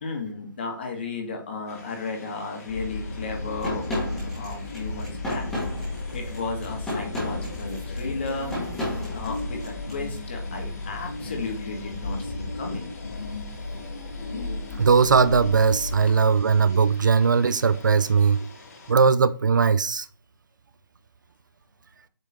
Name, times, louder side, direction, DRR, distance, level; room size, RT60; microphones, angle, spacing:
voice 1, 0.0-5.4 6.1-8.5 9.1-12.9, left 3 dB, 30° left, 1.6 m, -34 dB
sound 1, 1.7-18.9, left 3 dB, 45° left, 1.9 m, -49 dB
sound 2, 2.7-16.1, left 2 dB, 65° left, 2.1 m, -34 dB
sound 3, 3.6-10.0, left 1 dB, 5° left, 1.4 m, -33 dB
voice 2, 14.7-18.5 18.9-20.1, right 5 dB, 60° right, 0.5 m, -19 dB
8.0 x 3.6 x 4.2 m
hypercardioid pair, 180°, 11 cm